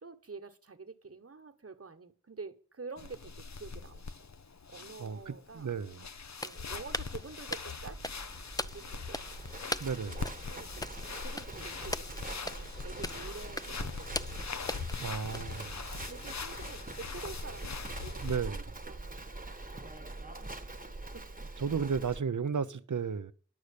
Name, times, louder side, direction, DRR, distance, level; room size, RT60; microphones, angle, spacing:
voice 1, 0.0-4.3 4.7-5.8 6.4-8.0 8.7-9.3 10.3-15.2 16.0-20.2 21.1-21.3, right 4 dB, 50° right, 1.3 m, -48 dB
sound 1, 3.0-18.4, left 5 dB, 60° left, 0.8 m, -42 dB
voice 2, 5.0-6.0 9.8-10.2 15.0-15.8 18.2-18.6 21.6-23.3, right 6 dB, 75° right, 0.8 m, -33 dB
sound 2, 6.3-16.1, left 1 dB, 10° left, 0.5 m, -42 dB
Livestock farm animals working animals, 7.8-22.2, right 2 dB, 30° right, 1.2 m, -44 dB
11.0 x 6.6 x 8.5 m
wide cardioid pair, 55°, 31 cm